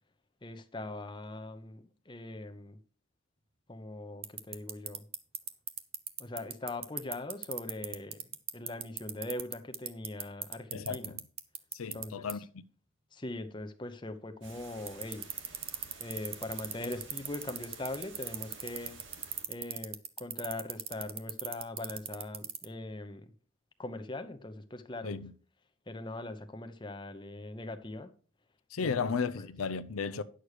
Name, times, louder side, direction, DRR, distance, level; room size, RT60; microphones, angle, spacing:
voice 1, 0.4-2.8 3.7-5.1 6.2-11.2 11.9-12.4 13.1-15.3 16.0-19.0 19.5-23.3 23.8-25.2 25.9-28.1 28.8-29.5, left 2 dB, 20° left, 0.7 m, -41 dB
sound 1, 4.2-12.0 12.3-12.4 14.9-22.6, right 10 dB, 30° right, 0.6 m, -35 dB
voice 2, 10.7-11.1 11.7-12.4 25.0-25.3 28.7-30.2, left 5 dB, 80° left, 0.6 m, -34 dB
sound 2, 14.4-19.4, right 3 dB, 60° right, 2.3 m, -52 dB
10.0 x 6.6 x 4.8 m
head